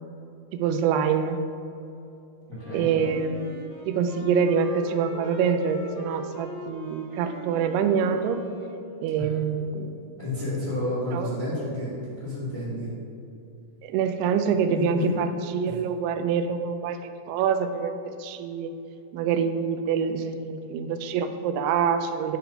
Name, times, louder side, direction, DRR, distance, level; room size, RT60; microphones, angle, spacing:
voice 1, 0.5-1.4 2.7-3.5 3.9-8.4 9.0-10.0 11.1-11.3 13.8-18.7 19.1-22.4, right 6 dB, 80° right, 8 dB, 2.4 m, -26 dB
voice 2, 2.5-2.9 9.2-9.3 10.2-12.9 14.7-15.1 15.6-15.8, left 2 dB, 85° left, -9 dB, 0.7 m, -30 dB
Wind instrument woodwind instrument, 2.5-9.3, left 1 dB, 70° left, 3.2 m, -40 dB
11.0 x 4.1 x 5.5 m, 2.6 s
omnidirectional pair, 5.0 m